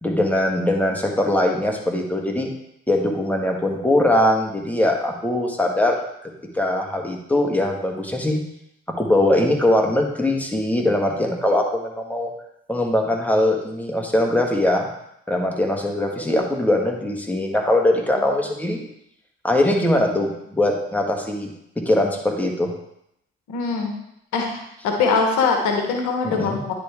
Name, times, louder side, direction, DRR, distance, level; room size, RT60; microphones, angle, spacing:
voice 1, 0.0-2.5 2.9-6.0 6.5-8.4 9.0-12.3 12.7-14.9 15.3-18.9 19.4-21.5 21.8-22.7 26.2-26.6, left 1 dB, 5° left, 1 dB, 1.6 m, -21 dB
voice 2, 23.5-23.9 24.3-24.5 24.8-26.7, left 4 dB, 80° left, 2 dB, 1.1 m, -21 dB
9.8 x 3.7 x 3.5 m, 0.78 s
supercardioid pair, 50°, 29 cm